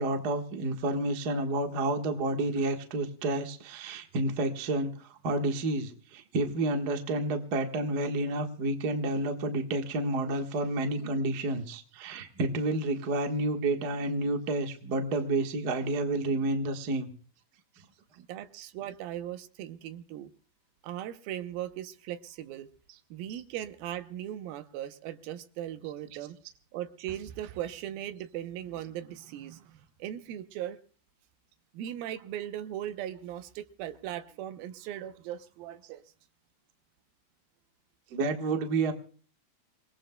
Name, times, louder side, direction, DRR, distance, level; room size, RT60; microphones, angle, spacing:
voice 1, 0.0-4.9 5.2-17.1 38.1-38.9, right 2 dB, 55° right, 4 dB, 1.0 m, -30 dB
voice 2, 18.2-20.3 20.8-22.7 23.1-26.4 26.7-30.8 31.7-36.0, right 11 dB, 80° right, 10 dB, 2.7 m, -38 dB
28.0 x 19.0 x 2.2 m, 0.42 s
omnidirectional pair, 4.2 m